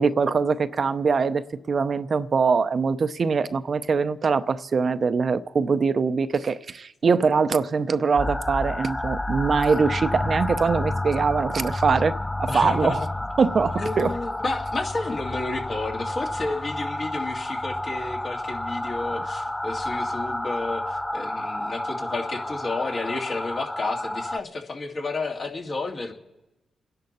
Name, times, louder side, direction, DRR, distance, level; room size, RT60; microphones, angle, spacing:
voice 1, 0.0-12.1 12.4-13.0 13.4-14.1, right 5 dB, 55° right, 0.7 m, -23 dB
sound 1, 8.2-24.4, left 1 dB, 15° left, 0.5 m, -30 dB
voice 2, 12.5-13.1 13.8-26.1, left 3 dB, 55° left, 2.3 m, -31 dB
27.5 x 10.5 x 4.2 m
supercardioid pair, 50°, 0 cm